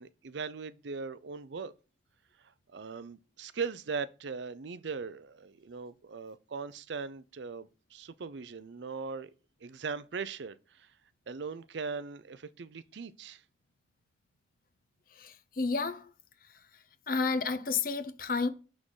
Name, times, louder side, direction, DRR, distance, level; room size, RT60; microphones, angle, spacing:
voice 1, 0.0-1.7 2.7-9.3 9.6-10.9 11.3-13.4, right 5 dB, 75° right, 0.5 m, -39 dB
voice 2, 15.2-16.1 17.1-18.5, left 4 dB, 50° left, 0.8 m, -31 dB
6.6 x 6.1 x 3.8 m
head